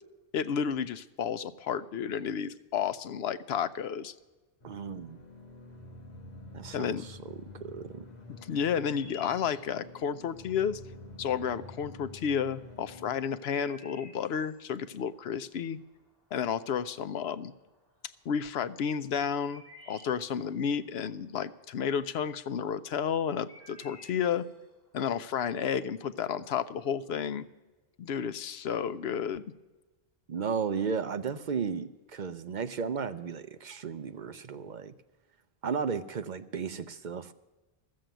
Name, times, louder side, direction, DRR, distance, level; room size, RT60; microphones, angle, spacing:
voice 1, 0.3-4.1 6.7-7.1 8.3-10.8 11.2-15.8 16.3-17.5 18.3-24.4 24.9-27.4 28.0-29.4, left 7 dB, 85° left, 14 dB, 0.9 m, -31 dB
sound 1, 4.6-13.1, left 2 dB, 40° left, 1.5 m, -48 dB
voice 2, 4.6-5.2 6.5-7.3 7.6-8.0 30.3-34.9 35.6-37.3, right 6 dB, 55° right, 12 dB, 0.7 m, -34 dB
sound 2, 8.3-26.6, left 1 dB, 20° left, 4.4 m, -57 dB
14.0 x 7.6 x 9.0 m, 1.2 s
omnidirectional pair, 1.0 m